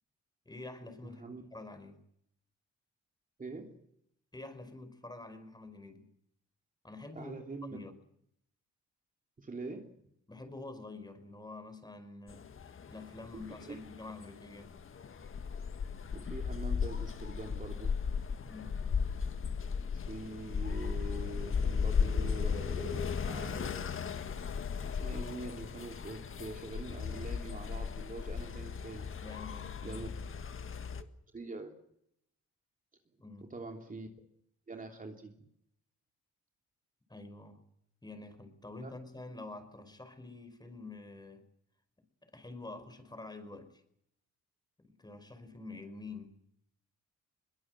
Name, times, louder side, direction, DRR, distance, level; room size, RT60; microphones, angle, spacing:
voice 1, 0.5-2.0 4.3-6.1 6.8-7.4 7.7-7.9 10.3-14.7 18.4-18.8 29.2-30.0 33.2-33.5 37.1-37.6 38.0-41.4 42.2-43.8 44.8-46.4, left 3 dB, 15° left, 9 dB, 5.2 m, -47 dB
voice 2, 3.4-3.9 7.1-7.8 9.4-10.0 13.3-13.8 16.1-18.0 19.9-24.0 24.8-29.1 29.8-30.1 31.3-31.7 33.4-34.1 34.7-35.3 38.8-38.9, right 3 dB, 25° right, 3 dB, 3.0 m, -44 dB
sound 1, 12.3-31.0, left 6 dB, 45° left, 1.8 m, -36 dB
22.0 x 21.5 x 7.8 m, 0.74 s
cardioid pair, 90°, 30 cm